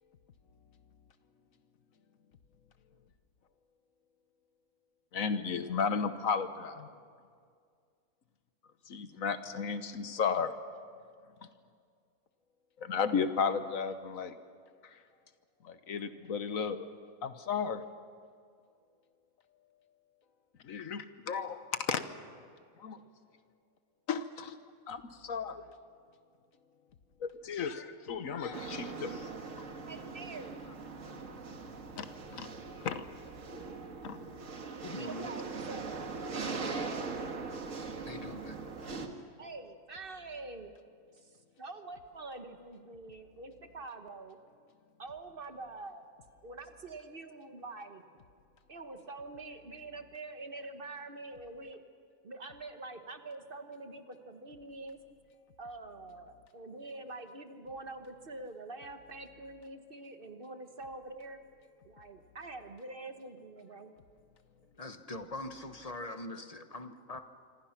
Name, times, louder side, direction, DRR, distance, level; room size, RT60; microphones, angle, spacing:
voice 1, 5.1-6.9 8.9-10.6 12.8-14.3 15.6-16.8 17.2-17.8 20.6-22.0 22.8-23.0 24.1-24.5 24.9-25.6 27.2-29.3 32.0-32.1 32.3-32.5 32.8-33.0 34.0-34.2, left 6 dB, 80° left, 10 dB, 1.5 m, -34 dB
sound 1, 28.5-39.1, right 4 dB, 70° right, 2.1 m, -41 dB
voice 2, 29.8-30.6 35.0-36.1 36.6-37.2 39.4-40.7 41.1-41.3 41.6-44.4 45.0-46.0 46.4-48.0 48.7-51.8 52.2-55.0 55.6-61.4 61.8-63.9, right 3 dB, 45° right, 7 dB, 1.4 m, -45 dB
voice 3, 34.8-35.3 38.1-38.6 64.8-67.2, left 2 dB, 30° left, 8 dB, 1.1 m, -42 dB
26.0 x 25.5 x 5.9 m, 2.2 s
omnidirectional pair, 1.4 m